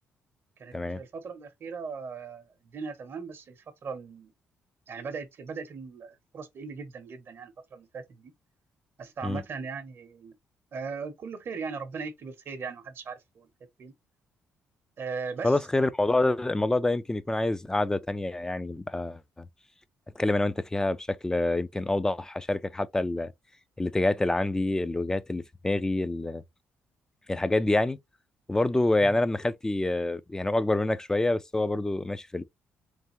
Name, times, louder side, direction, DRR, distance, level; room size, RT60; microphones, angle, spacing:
voice 1, 0.6-4.3 4.9-8.3 9.0-10.3 10.7-13.5 13.8-13.9 15.0-15.6 29.0-29.2, right 5 dB, 55° right, 0.8 m, -39 dB
voice 2, 15.4-19.5 20.2-23.3 23.8-26.4 27.3-28.0 28.5-32.4, left 2 dB, 10° left, 0.4 m, -27 dB
3.5 x 3.4 x 3.0 m
cardioid pair, 95°, 5 cm